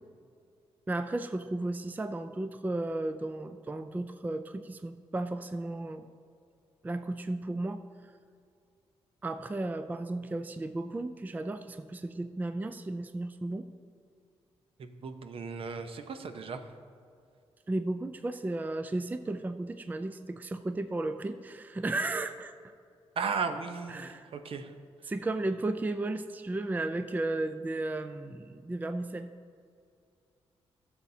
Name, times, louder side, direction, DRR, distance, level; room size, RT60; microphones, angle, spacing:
voice 1, 0.9-6.1 6.8-7.8 9.2-13.7 17.7-22.5 23.9-24.3 25.1-29.3, right 2 dB, 15° right, 9 dB, 0.4 m, -34 dB
voice 2, 14.8-16.6 23.2-24.7, right 5 dB, 60° right, 8 dB, 0.7 m, -36 dB
13.0 x 7.1 x 2.7 m, 2.4 s
cardioid pair, 75°, 11 cm